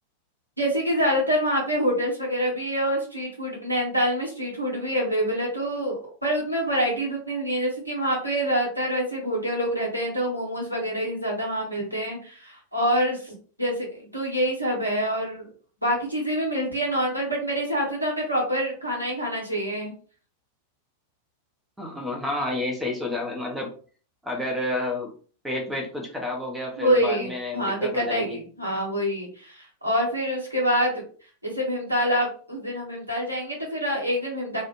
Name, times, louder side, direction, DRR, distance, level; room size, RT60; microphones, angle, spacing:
voice 1, 0.6-13.3 13.6-15.5 15.8-19.9 26.8-31.0 31.4-34.6, equal, 90° right, -3 dB, 0.9 m, -26 dB
voice 2, 21.8-23.7 24.2-25.1 25.4-28.4, left 2 dB, 5° right, 1 dB, 0.7 m, -30 dB
2.4 x 2.1 x 2.8 m, 0.41 s
figure-of-eight pair, 90°, 0 cm